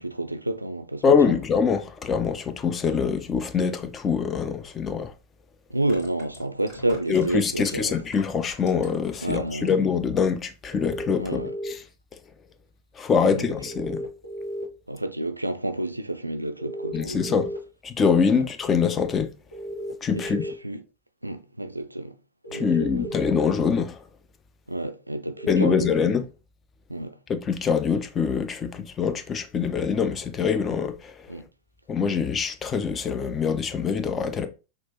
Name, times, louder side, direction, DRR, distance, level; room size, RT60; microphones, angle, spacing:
voice 1, 0.0-1.4 5.7-8.0 9.2-9.7 11.2-11.5 13.2-13.5 14.9-17.2 20.1-20.8 21.2-22.1 22.5-23.1 24.7-25.9 26.9-27.2 31.3-31.5, right 1 dB, 85° right, 0.3 m, -30 dB
voice 2, 1.0-5.1 7.1-11.8 13.0-14.0 16.9-17.5 17.8-19.3 20.0-20.4 22.5-24.0 25.5-26.3 27.3-31.2 31.9-34.5, left 6 dB, 20° left, 0.5 m, -24 dB
sound 1, 4.7-4.8 5.7-9.1 9.5-10.0 10.3-10.4, left 3 dB, 40° left, 1.8 m, -45 dB
sound 2, 10.7-11.7 13.7-14.6 16.6-17.6 19.5-20.5 22.4-23.4 25.4-25.8, right 1 dB, 85° left, 1.2 m, -34 dB
5.9 x 2.5 x 2.9 m
figure-of-eight pair, 90°, 0 cm